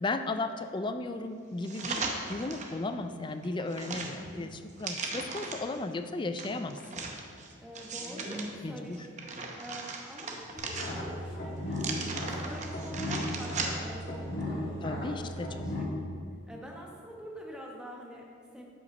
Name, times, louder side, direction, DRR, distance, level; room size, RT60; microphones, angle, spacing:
voice 1, 0.0-2.0 2.3-7.0 8.6-9.1 14.8-15.7 15.9-16.0, left 2 dB, 25° left, 9 dB, 0.3 m, -35 dB
sound 1, 1.6-2.8 3.2-5.8 6.4-8.5 8.9-11.2 11.7-14.0 14.4-14.5, right 3 dB, 35° right, 0.7 m, -38 dB
voice 2, 7.6-9.0 9.6-16.2 16.5-18.7, equal, 5° right, -2 dB, 1.1 m, -46 dB
sound 2, 10.6-15.8, left 1 dB, 50° left, 1.5 m, -36 dB
8.1 x 5.5 x 5.3 m, 2.2 s
head